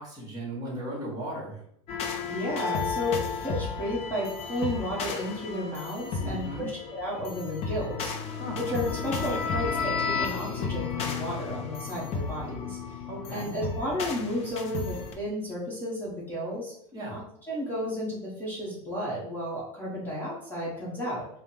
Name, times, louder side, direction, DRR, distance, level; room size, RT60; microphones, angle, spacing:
voice 1, 0.0-1.6 6.2-6.7 8.4-8.6 13.1-13.5 16.9-17.2, right 1 dB, 20° right, -3 dB, 1.5 m, -36 dB
sound 1, 1.9-15.1, left 5 dB, 35° left, 0.6 m, -33 dB
voice 2, 2.2-13.0 13.3-16.7 17.1-17.2 17.5-21.2, equal, 10° left, -6 dB, 1.1 m, -33 dB
3.5 x 2.2 x 4.4 m, 0.71 s
supercardioid pair, 120°, 18 cm